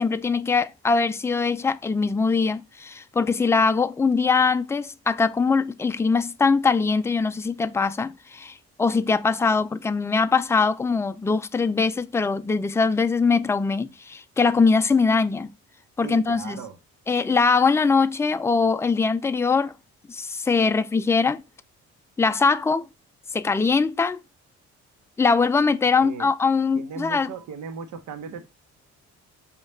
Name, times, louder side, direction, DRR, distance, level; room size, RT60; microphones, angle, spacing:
voice 1, 0.0-15.5 16.0-16.6 17.1-19.7 20.1-21.4 22.2-22.9 23.3-24.2 25.2-27.3, left 4 dB, 10° left, 0.3 m, -22 dB
voice 2, 16.0-16.8 26.0-26.3 26.7-28.5, right 6 dB, 75° right, 0.8 m, -37 dB
5.1 x 2.4 x 4.2 m
cardioid pair, 90°, 30 cm